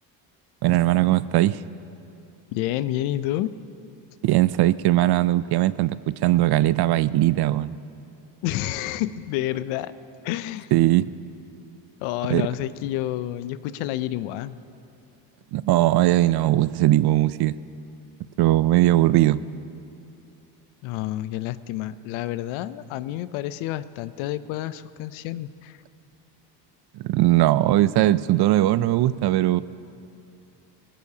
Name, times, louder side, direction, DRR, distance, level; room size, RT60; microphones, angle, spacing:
voice 1, 0.6-1.6 4.2-7.7 10.7-11.1 12.3-12.4 15.5-17.6 18.4-19.4 27.0-29.6, right 15 dB, 55° right, 17 dB, 0.5 m, -19 dB
voice 2, 2.5-3.6 8.4-9.9 10.2-10.7 12.0-14.6 20.8-25.8, left 14 dB, 80° left, 15 dB, 0.7 m, -29 dB
19.5 x 17.5 x 2.9 m, 2.7 s
supercardioid pair, 75°, 48 cm